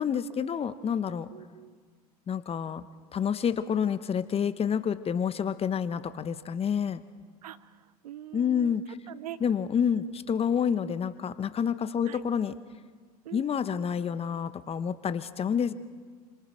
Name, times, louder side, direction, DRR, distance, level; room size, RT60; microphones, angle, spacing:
voice 1, 0.0-1.3 2.3-2.8 3.1-7.0 8.3-9.0 9.4-12.5 13.3-15.7, left 7 dB, 30° left, 13 dB, 1.1 m, -28 dB
voice 2, 1.3-1.8 7.4-7.8 8.0-8.8 9.1-9.4 10.0-10.1 12.1-12.2 13.2-13.5, right 12 dB, 80° right, 17 dB, 0.8 m, -43 dB
27.0 x 26.5 x 4.6 m, 1.6 s
hypercardioid pair, 75°, 20 cm